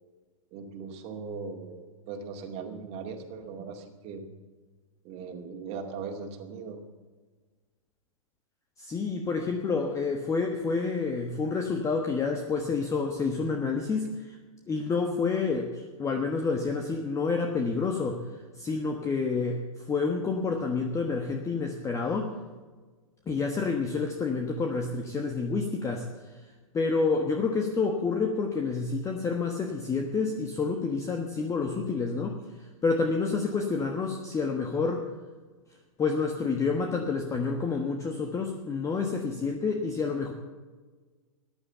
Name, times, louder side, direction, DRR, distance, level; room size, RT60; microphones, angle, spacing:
voice 1, 0.5-4.2 5.0-6.8, right 5 dB, 35° right, 4 dB, 2.3 m, -39 dB
voice 2, 8.8-14.4 14.7-18.2 18.6-22.4 23.3-26.4 26.7-35.1 36.0-40.3, left 4 dB, 15° left, 3 dB, 1.3 m, -29 dB
14.5 x 10.5 x 6.8 m, 1.4 s
figure-of-eight pair, 105°, 18 cm